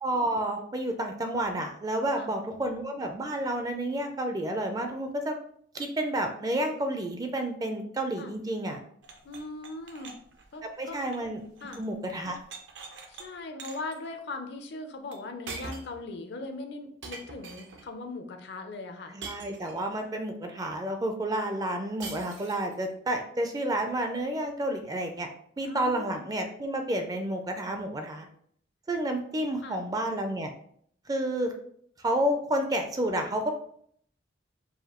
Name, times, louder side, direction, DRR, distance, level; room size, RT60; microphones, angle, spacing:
voice 1, 0.0-5.4 5.7-8.8 10.8-11.4 11.8-12.4 19.1-25.3 25.6-28.3 28.9-30.5 31.1-31.5 32.0-33.5, right 1 dB, 20° right, 5 dB, 0.4 m, -30 dB
sound 1, 9.0-11.9 12.2-13.3 13.6-14.0 15.1-15.2 15.5-16.0 17.0-17.9 19.2-20.0 22.0-22.7, right 4 dB, 65° right, 0.6 m, -44 dB
voice 2, 9.2-10.1 10.5-11.0 11.6-11.8 13.1-19.2 25.6-26.2 29.6-29.8, left 2 dB, 60° left, 6 dB, 0.5 m, -39 dB
4.8 x 2.6 x 2.9 m, 0.64 s
head